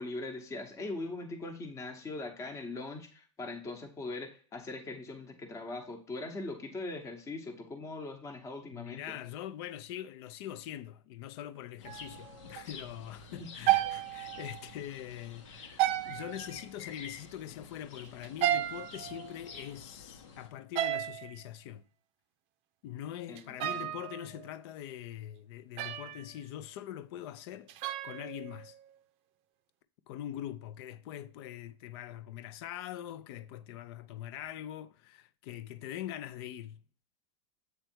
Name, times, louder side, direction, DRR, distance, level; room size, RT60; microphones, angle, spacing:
voice 1, 0.0-9.2 13.4-13.5 23.3-23.9, left 2 dB, 20° left, 0.9 m, -41 dB
voice 2, 8.7-21.8 22.8-27.7 28.0-28.8 30.1-36.8, left 11 dB, 55° left, 0.6 m, -43 dB
sound 1, 11.8-20.5, left 5 dB, 85° left, 1.3 m, -50 dB
sound 2, 11.9-12.3 12.6-12.7 13.6-14.7 15.8-16.6 18.2-19.7 20.8-21.3 23.4-24.5 25.8-26.4 27.7-28.9, right 14 dB, 40° right, 0.5 m, -33 dB
7.9 x 3.4 x 4.4 m
supercardioid pair, 140°, 16 cm